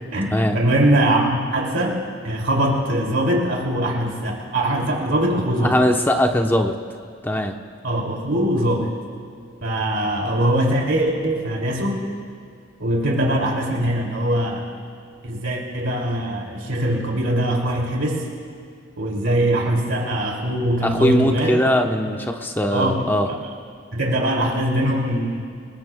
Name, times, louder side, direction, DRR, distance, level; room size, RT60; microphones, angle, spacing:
voice 1, 0.1-2.0 2.2-5.8 7.8-8.9 9.6-12.1 12.8-14.7 15.2-18.3 19.0-21.7 22.7-23.1 23.9-25.5, right 1 dB, 90° right, -1 dB, 2.5 m, -22 dB
voice 2, 5.6-6.7 7.2-7.6 20.8-23.3, left 1 dB, 10° left, 4 dB, 0.8 m, -20 dB
27.5 x 20.0 x 2.2 m, 2.3 s
head